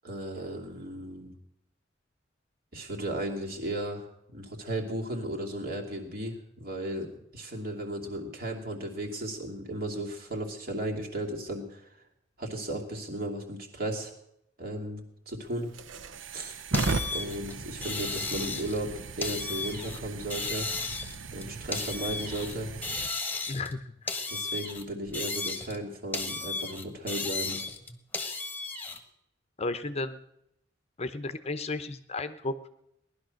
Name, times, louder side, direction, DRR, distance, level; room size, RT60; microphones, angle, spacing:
voice 1, 0.0-1.3 2.7-11.9 12.4-14.1 14.6-15.7 16.3-16.6 17.1-20.7 21.3-22.7 24.3-27.6, right 1 dB, 50° right, 1 dB, 2.8 m, -35 dB
sound 1, 15.4-23.1, right 3 dB, 85° right, 0.8 m, -37 dB
sound 2, 16.7-18.8 19.2-20.0 20.3-22.6 22.8-23.8 24.1-25.8 26.1-29.0, left 3 dB, 10° left, 1.4 m, -34 dB
voice 2, 23.5-23.8 29.6-30.2 31.0-32.7, left 2 dB, 35° left, 11 dB, 0.7 m, -33 dB
18.5 x 11.5 x 6.4 m, 0.79 s
head